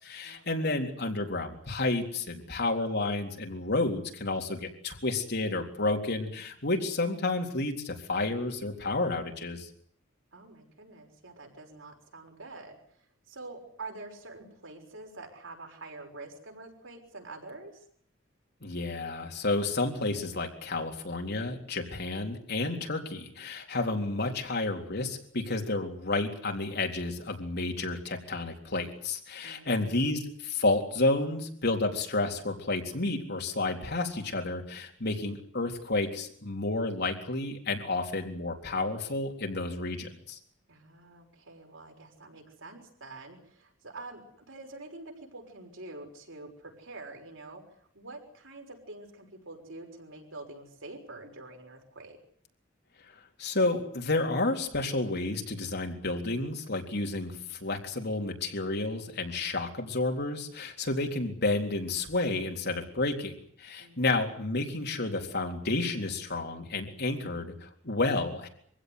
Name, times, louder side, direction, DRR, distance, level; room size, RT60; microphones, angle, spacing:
voice 1, 0.0-9.7 18.6-40.4 53.4-68.5, left 2 dB, 55° left, 3 dB, 3.8 m, -31 dB
voice 2, 10.3-12.8 13.3-17.8 29.4-29.9 40.7-47.6 47.9-52.2 63.8-64.1, right 2 dB, 85° right, 2 dB, 6.2 m, -46 dB
24.5 x 16.0 x 9.8 m, 0.63 s
head